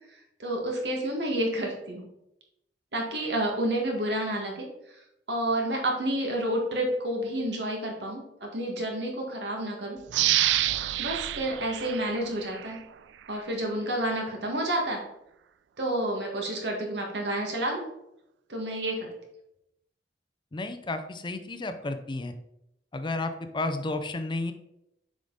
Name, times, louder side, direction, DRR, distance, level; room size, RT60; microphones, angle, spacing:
voice 1, 0.4-2.0 2.9-5.0 5.3-10.0 11.0-12.8 13.3-15.0 15.8-17.8 18.5-19.1, right 1 dB, 70° right, 0 dB, 1.8 m, -30 dB
sound 1, 10.1-12.8 13.3-13.4, right 13 dB, 85° right, 0.3 m, -28 dB
voice 2, 20.5-22.3 22.9-24.5, left 2 dB, 25° left, 8 dB, 0.5 m, -32 dB
6.9 x 5.0 x 4.0 m, 0.83 s
head